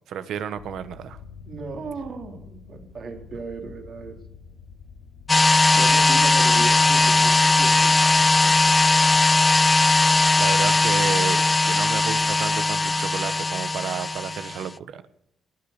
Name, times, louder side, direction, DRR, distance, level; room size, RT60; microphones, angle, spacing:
voice 1, 0.1-1.2 9.1-9.2 10.4-15.0, right 8 dB, 75° right, 13 dB, 1.2 m, -32 dB
sound 1, 0.5-13.0, left 6 dB, 80° left, 6.2 m, -48 dB
voice 2, 1.4-4.2 5.7-8.7, right 4 dB, 50° right, 3 dB, 3.5 m, -36 dB
sound 2, 5.3-14.6, left 2 dB, 20° left, 0.4 m, -19 dB
18.5 x 8.8 x 6.7 m, 0.78 s
cardioid pair, 90°, 0 cm